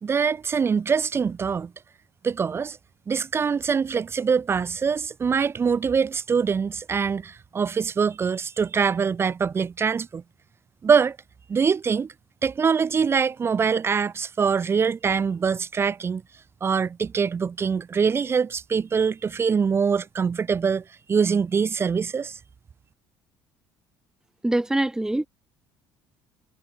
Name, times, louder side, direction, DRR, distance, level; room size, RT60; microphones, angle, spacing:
voice 1, 0.0-1.7 2.2-2.8 3.1-10.2 10.8-11.2 11.5-12.1 12.4-16.2 16.6-22.4, right 6 dB, 30° right, 2.6 m, -24 dB
voice 2, 24.4-25.3, right 1 dB, 5° right, 2.7 m, -23 dB
cardioid pair, 110°, 8 cm